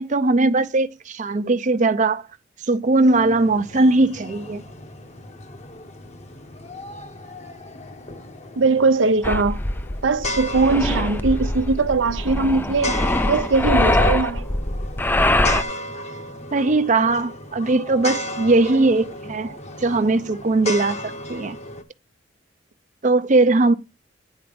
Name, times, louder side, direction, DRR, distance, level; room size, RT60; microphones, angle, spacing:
voice 1, 0.0-2.2 2.7-4.6 16.5-21.0 21.3-21.6 23.0-23.7, right 2 dB, 40° right, 0.6 m, -19 dB
sound 1, 2.8-21.8, left 1 dB, 35° left, 1.0 m, -35 dB
voice 2, 8.6-9.6 10.0-13.0 13.3-14.4, right 3 dB, 80° right, 0.7 m, -20 dB
sound 2, 9.2-15.6, left 1 dB, 10° left, 0.4 m, -22 dB
9.2 x 4.4 x 5.1 m
head